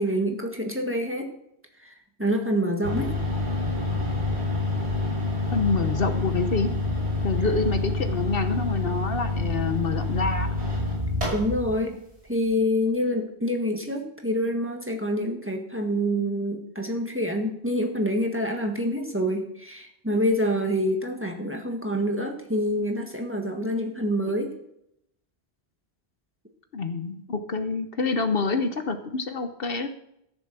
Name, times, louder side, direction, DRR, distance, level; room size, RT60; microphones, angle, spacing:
voice 1, 0.0-1.3 1.8-1.9 2.2-3.1 11.3-12.0 12.3-24.5, equal, 10° right, 3 dB, 1.5 m, -26 dB
sound 1, 2.8-11.8, left 2 dB, 85° right, 6.6 m, -27 dB
voice 2, 5.5-6.7 7.2-10.5 26.7-29.9, left 4 dB, 60° left, 8 dB, 1.1 m, -27 dB
13.5 x 6.9 x 6.7 m, 0.78 s
omnidirectional pair, 1.1 m